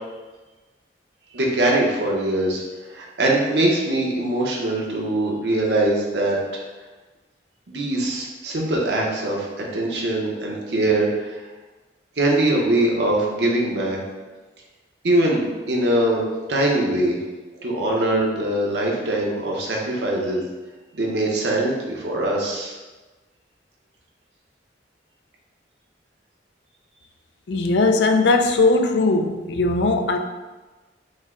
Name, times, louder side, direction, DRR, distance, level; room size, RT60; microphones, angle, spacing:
voice 1, 1.3-2.6 2.9-6.6 7.7-11.4 12.2-14.0 15.0-16.2 16.5-17.2 17.6-20.4 20.9-22.7, right 1 dB, 70° right, -2 dB, 0.9 m, -22 dB
voice 2, 27.5-30.2, left 3 dB, 70° left, 5 dB, 0.4 m, -19 dB
5.3 x 2.2 x 3.7 m, 1.2 s
head